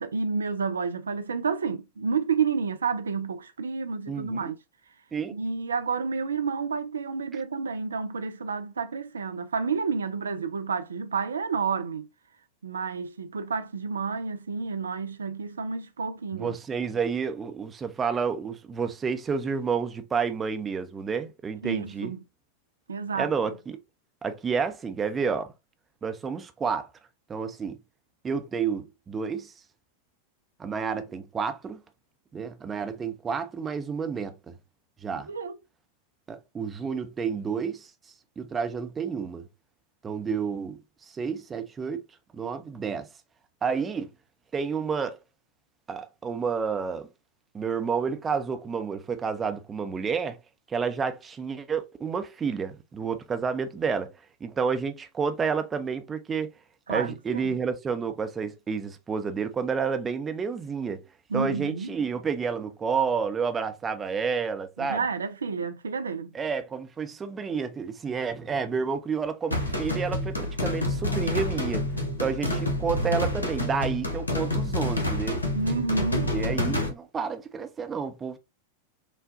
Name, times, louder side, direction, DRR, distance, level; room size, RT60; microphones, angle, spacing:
voice 1, 0.0-4.6 5.3-12.1 12.6-16.5 21.6-22.2 22.9-23.3 35.3-35.6 56.9-57.6 61.3-62.0 64.8-66.3 75.5-76.3, right 5 dB, 70° right, 0.4 m, -30 dB
voice 2, 4.1-4.5 5.1-5.3 16.3-22.1 23.1-23.8 24.2-25.5 26.0-26.9 27.3-27.8 28.2-29.5 30.6-31.8 32.3-34.5 35.0-35.3 36.3-37.9 38.4-39.5 40.0-40.8 41.1-42.0 42.3-43.1 43.6-44.1 44.5-45.2 45.9-47.1 47.5-50.4 50.7-54.1 54.4-56.5 56.9-61.0 61.3-65.0 66.3-71.9 72.2-75.4 76.3-78.4, right 5 dB, 20° right, 0.6 m, -30 dB
sound 1, 69.5-76.9, left 1 dB, 80° left, 0.9 m, -28 dB
5.9 x 2.2 x 2.5 m
figure-of-eight pair, 90°, 0 cm